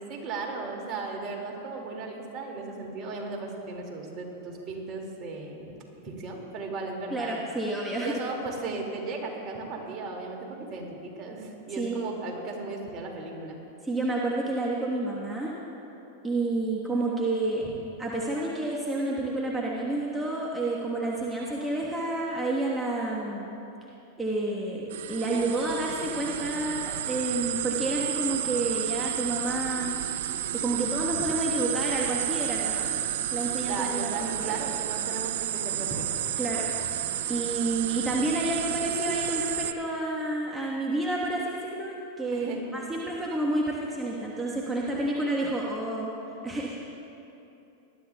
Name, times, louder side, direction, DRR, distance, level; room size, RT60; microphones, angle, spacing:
voice 1, 0.1-5.7 6.0-7.3 8.0-13.6 33.7-36.3 36.7-36.9 42.3-42.8, right 3 dB, 40° right, 0 dB, 2.2 m, -36 dB
voice 2, 7.1-8.2 11.8-12.0 13.8-15.5 16.2-17.6 18.0-23.5 24.2-29.9 30.6-33.0 33.3-34.6 36.4-36.7 37.3-46.1 46.4-46.8, right 2 dB, 10° right, -4 dB, 1.2 m, -29 dB
sound 1, 24.9-39.7, right 11 dB, 70° right, 0.4 m, -31 dB
20.0 x 12.0 x 2.3 m, 2.9 s
hypercardioid pair, 115°, 0 cm